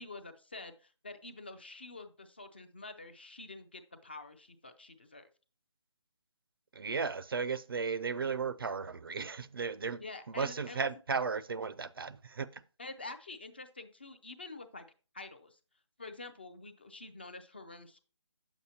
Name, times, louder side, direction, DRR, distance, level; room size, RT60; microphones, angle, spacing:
voice 1, 0.0-5.3 10.0-10.9 12.8-14.8 15.1-15.6 16.0-18.0, left 3 dB, 20° left, 0.4 m, -47 dB
voice 2, 6.7-10.0 10.4-12.6, right 5 dB, 50° right, 0.4 m, -35 dB
9.1 x 7.1 x 2.7 m
hypercardioid pair, 170°, 16 cm